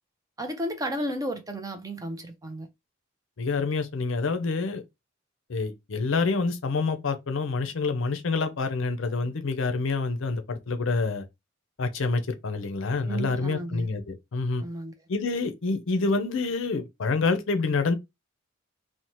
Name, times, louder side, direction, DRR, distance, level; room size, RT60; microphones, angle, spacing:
voice 1, 0.4-2.7 13.0-13.9 14.6-14.9, right 1 dB, 15° right, 0.4 m, -33 dB
voice 2, 3.4-4.8 5.5-11.2 11.8-14.6 15.1-17.9, left 3 dB, 65° left, 0.5 m, -27 dB
2.7 x 2.1 x 2.9 m
head